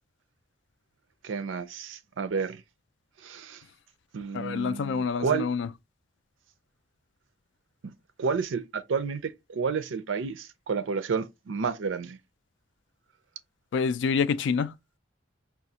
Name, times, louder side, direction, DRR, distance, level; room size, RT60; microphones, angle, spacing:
voice 1, 1.2-2.6 3.2-3.6 4.1-5.5 7.8-12.2, right 5 dB, 85° right, 0.5 m, -31 dB
voice 2, 4.3-5.7 13.7-14.7, left 5 dB, 70° left, 0.3 m, -27 dB
4.9 x 2.3 x 2.8 m
head